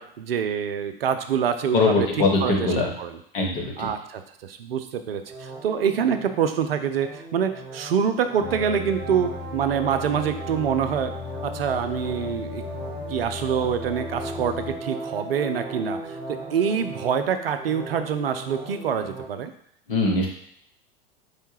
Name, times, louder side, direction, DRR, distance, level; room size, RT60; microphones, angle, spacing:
voice 1, 0.0-1.9 2.4-2.7 3.0-3.1 3.8-11.1 11.4-12.6 13.1-16.0 16.3-19.5, right 7 dB, 75° right, 8 dB, 0.5 m, -26 dB
voice 2, 1.7-2.9 3.3-3.9 19.9-20.3, left 3 dB, 60° left, -1 dB, 1.1 m, -22 dB
sound 1, 5.2-19.2, right 2 dB, 30° right, 1.1 m, -37 dB
sound 2, 8.4-14.8, left 9 dB, 20° left, 0.4 m, -38 dB
4.7 x 2.2 x 3.1 m, 0.69 s
figure-of-eight pair, 85°, 30 cm